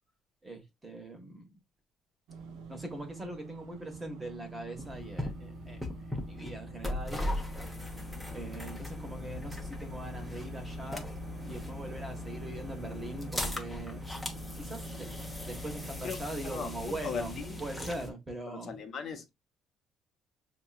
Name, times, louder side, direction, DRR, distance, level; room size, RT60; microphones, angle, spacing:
voice 1, 0.4-1.5 2.7-7.4 8.3-11.1 11.5-14.0 14.6-15.1 15.4-17.3 17.6-18.8, right 1 dB, 15° right, 1.4 m, -41 dB
sound 1, 2.3-17.9, right 5 dB, 80° right, 0.9 m, -46 dB
sound 2, 4.7-18.1, left 2 dB, ahead, 1.1 m, -39 dB
voice 2, 17.0-17.6 18.5-19.3, left 6 dB, 45° left, 1.1 m, -38 dB
6.4 x 3.0 x 2.4 m
cardioid pair, 150°, 0 cm